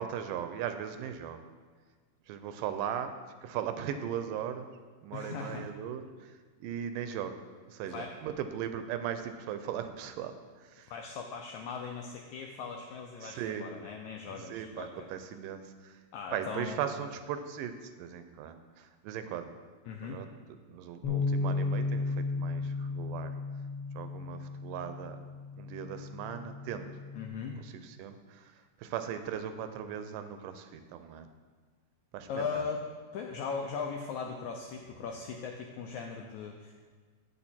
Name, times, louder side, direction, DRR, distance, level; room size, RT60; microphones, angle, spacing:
voice 1, 0.0-1.4 2.3-3.1 3.4-4.7 5.0-7.3 7.7-10.9 13.2-13.7 14.3-16.0 16.3-19.5 20.0-20.3 20.7-23.4 24.0-25.2 25.6-26.9 27.6-31.3 32.1-32.6, right 9 dB, 80° right, 9 dB, 2.1 m, -38 dB
voice 2, 5.1-5.7 7.8-8.1 10.9-15.1 16.1-16.8 19.9-20.2 27.1-27.6 32.3-32.8 33.1-36.7, left 5 dB, 80° left, 2 dB, 1.7 m, -39 dB
Bass guitar, 21.0-27.3, left 3 dB, 60° left, 1.5 m, -34 dB
8.7 x 7.3 x 4.2 m, 1.5 s
omnidirectional pair, 3.9 m